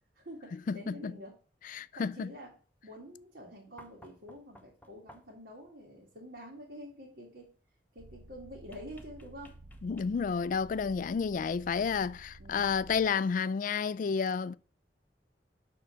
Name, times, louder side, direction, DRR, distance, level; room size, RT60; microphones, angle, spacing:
voice 1, 0.1-1.4 1.9-2.5 2.8-7.5 7.9-9.6 12.4-12.7, equal, 70° right, 1.9 m, -48 dB
voice 2, 0.7-1.1 1.6-2.3 9.8-14.6, left 6 dB, 45° left, 0.3 m, -31 dB
sound 1, 3.8-5.5 8.7-10.5 12.0-12.1, equal, 10° left, 0.7 m, -57 dB
sound 2, 8.0-13.1, right 2 dB, 45° right, 0.8 m, -52 dB
6.7 x 3.8 x 6.2 m
head